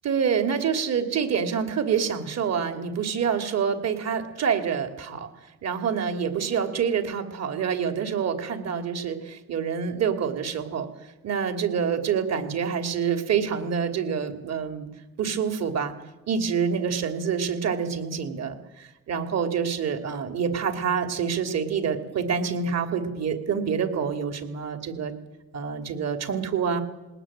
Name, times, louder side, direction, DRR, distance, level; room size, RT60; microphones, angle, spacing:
voice 1, 0.0-5.3 5.6-10.9 11.2-14.9 15.2-15.9 16.3-25.1 25.5-26.8, right 7 dB, 60° right, 7 dB, 3.1 m, -27 dB
20.5 x 19.0 x 9.0 m, 1.1 s
cardioid pair, 90°, 30 cm